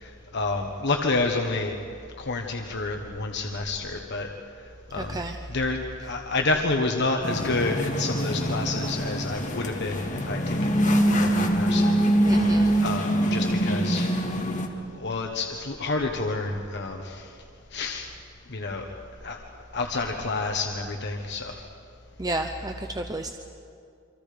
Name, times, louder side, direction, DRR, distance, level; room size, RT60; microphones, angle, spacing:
voice 1, 0.0-1.7 2.2-4.3 4.9-5.2 5.5-10.8 11.2-12.0 12.8-14.1 15.0-17.3 17.7-18.1 18.5-18.9 19.2-19.4 19.7-21.5, left 3 dB, 55° left, 2 dB, 1.4 m, -29 dB
voice 2, 5.0-5.4 12.3-12.8 22.2-23.3, right 2 dB, 20° right, 5 dB, 0.8 m, -31 dB
sound 1, 7.2-14.7, right 1 dB, 35° left, 2.1 m, -24 dB
28.0 x 25.0 x 5.2 m, 2.4 s
head